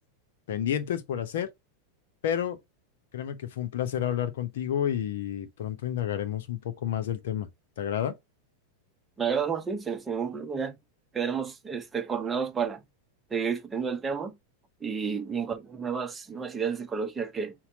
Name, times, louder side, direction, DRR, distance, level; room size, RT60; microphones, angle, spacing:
voice 1, 0.5-1.5 2.2-2.6 3.1-7.5 7.8-8.1, left 10 dB, 55° left, 0.8 m, -30 dB
voice 2, 9.2-10.8 11.1-12.8 13.3-14.4 14.8-17.5, right 6 dB, 15° right, 0.8 m, -31 dB
5.8 x 2.2 x 4.0 m
figure-of-eight pair, 90°, 0 cm